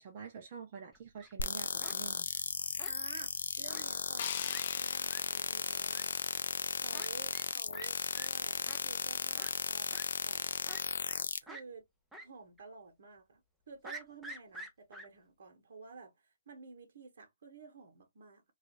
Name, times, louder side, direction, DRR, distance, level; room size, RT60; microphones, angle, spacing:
voice 1, 0.0-2.3, right 6 dB, 40° right, 0.7 m, -47 dB
Fowl, 0.9-1.3 1.8-2.0 2.8-3.3 3.7-3.8 4.2-4.3 4.5-4.6 5.1-5.2 5.9-6.0 6.9-7.1 7.3-7.5 7.7-7.9 8.1-8.3 8.7-8.8 9.4-9.5 9.9-10.1 10.7-11.2 11.5-11.6 12.1-12.3 12.6-12.7 13.8-15.1, right 1 dB, 5° right, 0.6 m, -47 dB
sound 1, 1.4-11.4, left 5 dB, 85° left, 0.5 m, -36 dB
voice 2, 2.8-6.1 6.8-10.4 11.4-18.4, right 4 dB, 65° right, 1.2 m, -52 dB
sound 2, 4.2-7.2, left 9 dB, 40° left, 0.6 m, -45 dB
3.2 x 2.5 x 3.1 m
hypercardioid pair, 160°, 0 cm